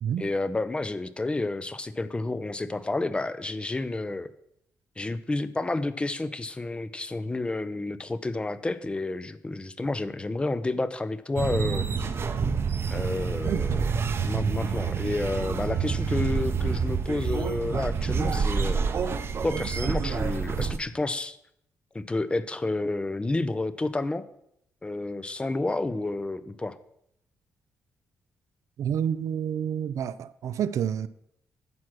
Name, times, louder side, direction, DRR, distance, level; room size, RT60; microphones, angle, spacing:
voice 1, 0.2-4.3 5.0-11.9 12.9-13.8 14.2-18.8 19.4-21.4 21.9-24.3 24.8-26.8, left 2 dB, 20° left, 0.6 m, -30 dB
sound 1, 11.4-20.8, right 5 dB, 45° right, 0.8 m, -28 dB
voice 2, 28.8-31.1, right 9 dB, 65° right, 0.4 m, -29 dB
9.6 x 6.0 x 6.0 m
cardioid pair, 90°, 6 cm